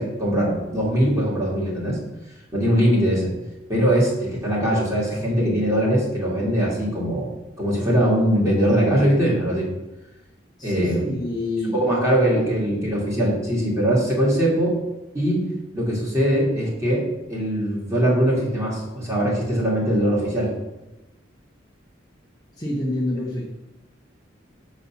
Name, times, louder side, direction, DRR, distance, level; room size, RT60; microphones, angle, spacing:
voice 1, 0.0-2.0 2.5-3.3 3.7-7.3 7.6-9.7 10.6-11.1 11.7-14.7 15.1-15.4 15.7-17.0 17.3-20.5, equal, 15° right, -6 dB, 2.4 m, -21 dB
voice 2, 10.6-12.4 20.1-20.3 22.6-23.4, left 1 dB, 20° left, -4 dB, 1.0 m, -28 dB
7.5 x 4.1 x 5.8 m, 1.0 s
head